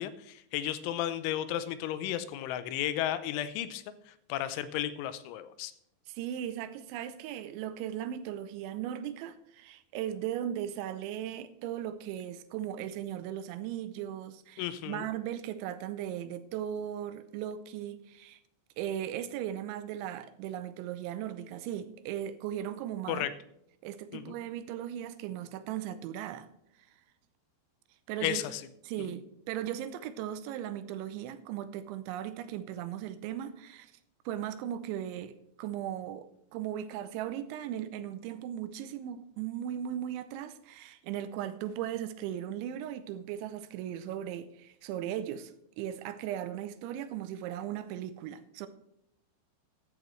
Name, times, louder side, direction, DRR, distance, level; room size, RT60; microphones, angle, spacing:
voice 1, 0.0-5.7 14.6-15.1 23.1-23.3 24.1-24.4 28.2-28.6, left 12 dB, 85° left, 13 dB, 3.1 m, -34 dB
voice 2, 6.1-18.4 18.8-23.3 23.8-26.5 28.1-28.4 28.8-33.9 34.3-48.7, right 10 dB, 80° right, 12 dB, 3.0 m, -37 dB
14.0 x 12.0 x 3.2 m, 0.77 s
omnidirectional pair, 5.4 m